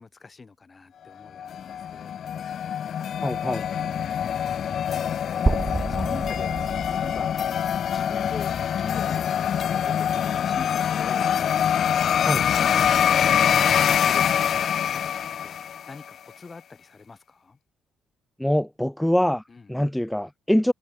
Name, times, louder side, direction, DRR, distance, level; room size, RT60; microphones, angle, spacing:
voice 1, 0.0-2.2 4.0-6.6 6.9-7.3 7.8-9.3 9.6-11.7 12.3-13.0 13.3-15.6 15.9-17.6 19.5-19.7, left 4 dB, 30° left, 5.1 m, -43 dB
sound 1, 1.4-16.0, left 9 dB, 60° left, 0.4 m, -24 dB
voice 2, 3.2-3.6 12.3-12.4 18.4-19.4 19.7-20.7, equal, 5° left, 1.5 m, -23 dB
sound 2, 5.5-9.4, right 3 dB, 20° right, 2.9 m, -30 dB
cardioid pair, 90°, 0 cm